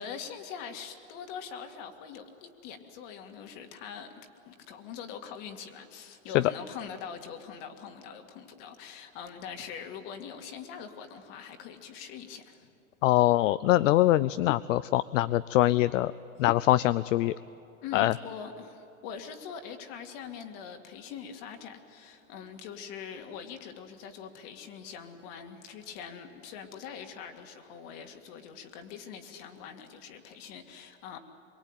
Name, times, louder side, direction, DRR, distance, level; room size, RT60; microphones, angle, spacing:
voice 1, 0.0-4.2 4.5-12.7 17.8-31.2, left 7 dB, 40° left, 6 dB, 2.2 m, -43 dB
voice 2, 13.0-16.1 16.4-17.3 17.9-18.1, left 15 dB, 65° left, 16 dB, 0.6 m, -23 dB
24.5 x 23.5 x 9.0 m, 2.9 s
supercardioid pair, 160°, 41 cm